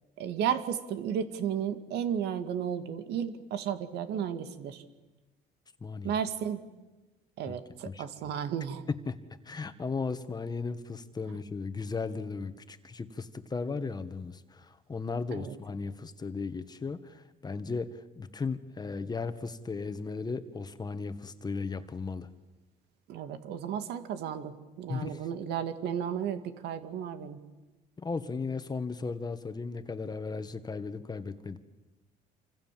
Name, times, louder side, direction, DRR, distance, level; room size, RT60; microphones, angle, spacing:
voice 1, 0.2-4.8 6.0-6.6 7.4-8.9 15.3-15.6 23.1-27.4, right 8 dB, 80° right, 9 dB, 2.2 m, -33 dB
voice 2, 5.8-6.2 7.5-7.6 7.9-8.1 8.9-9.2 9.5-22.3 24.9-25.3 28.0-31.6, left 4 dB, 25° left, 10 dB, 1.6 m, -36 dB
28.0 x 26.0 x 7.6 m, 1.1 s
cardioid pair, 110°, 17 cm